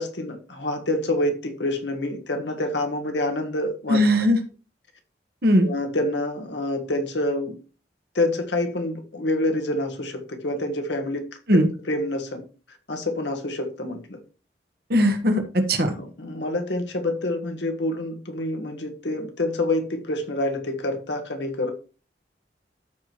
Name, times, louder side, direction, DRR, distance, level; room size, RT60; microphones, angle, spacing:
voice 1, 0.0-4.0 5.6-7.6 8.1-12.5 12.9-14.2 15.8-21.7, left 1 dB, 85° left, 1.5 m, -27 dB
voice 2, 3.9-4.4 5.4-5.7 11.5-11.7 14.9-15.9, equal, 60° right, 1.4 m, -19 dB
13.5 x 4.7 x 3.0 m
head